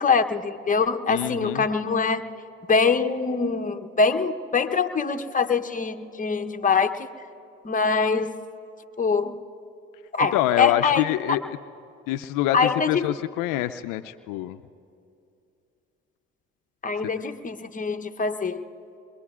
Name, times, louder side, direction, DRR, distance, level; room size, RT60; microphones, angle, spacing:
voice 1, 0.0-2.2 2.7-7.1 7.6-8.3 9.0-9.4 10.1-11.0 12.5-13.1 16.8-18.6, left 5 dB, 25° left, 6 dB, 0.9 m, -23 dB
voice 2, 1.1-1.7 10.3-11.6 12.1-14.6, left 14 dB, 70° left, 10 dB, 0.5 m, -26 dB
26.0 x 22.0 x 2.4 m, 2.6 s
hypercardioid pair, 55°, 33 cm